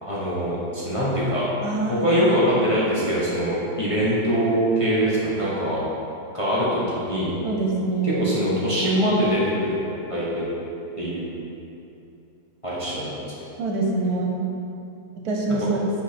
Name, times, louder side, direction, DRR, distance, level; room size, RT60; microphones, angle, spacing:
voice 1, 0.0-1.4 1.9-5.8 6.3-7.3 8.0-9.8 10.1-10.5 11.0-11.3 12.6-13.1, equal, 25° left, -9 dB, 0.9 m, -23 dB
voice 2, 1.6-2.3 7.4-8.4 13.0-13.1 13.6-14.4 15.2-15.8, right 3 dB, 75° right, -1 dB, 1.3 m, -25 dB
5.4 x 4.9 x 4.2 m, 2.8 s
omnidirectional pair, 1.7 m